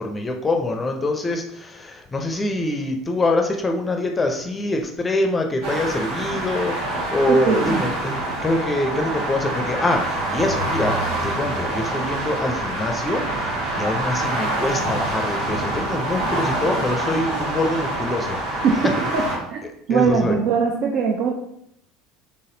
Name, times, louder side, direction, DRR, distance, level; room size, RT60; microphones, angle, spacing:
voice 1, 0.0-13.2 13.8-18.4 19.6-20.4, left 2 dB, 20° left, 3 dB, 0.5 m, -24 dB
sound 1, 5.6-19.4, right 2 dB, 70° right, 1.3 m, -26 dB
voice 2, 7.3-7.8 18.6-18.8 19.1-19.2 19.5-19.6 19.9-21.3, right 5 dB, 55° right, 1 dB, 0.5 m, -20 dB
4.0 x 3.6 x 2.7 m, 0.74 s
figure-of-eight pair, 70°, 0 cm